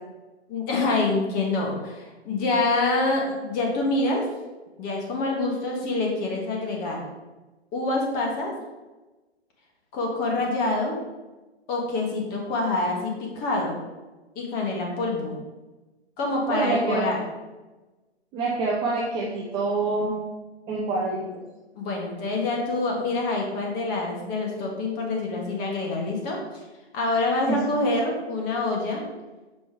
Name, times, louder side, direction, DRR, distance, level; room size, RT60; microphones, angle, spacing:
voice 1, 0.5-4.2 4.8-7.0 7.7-8.5 9.9-11.0 11.7-13.8 14.3-15.3 16.2-17.2 21.7-26.4 26.9-29.1, left 2 dB, 30° left, -1 dB, 1.5 m, -26 dB
voice 2, 16.5-17.0 18.3-20.1 20.7-21.4 27.4-27.6, right 3 dB, 15° right, -3 dB, 0.5 m, -26 dB
5.5 x 4.3 x 4.6 m, 1.2 s
hypercardioid pair, 125°, 33 cm